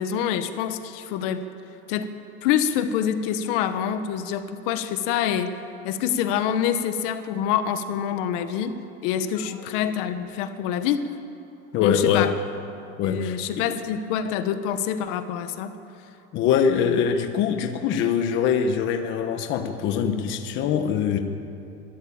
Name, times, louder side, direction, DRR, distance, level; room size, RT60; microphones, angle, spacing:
voice 1, 0.0-1.4 1.9-2.1 2.4-5.5 5.8-8.7 9.0-11.0 11.8-12.3 13.0-15.7, left 9 dB, 65° left, 9 dB, 1.3 m, -26 dB
voice 2, 11.7-12.3 13.0-13.6 16.3-21.2, left 7 dB, 40° left, 6 dB, 1.1 m, -23 dB
22.5 x 13.0 x 8.8 m, 2.8 s
cardioid pair, 170°, 30 cm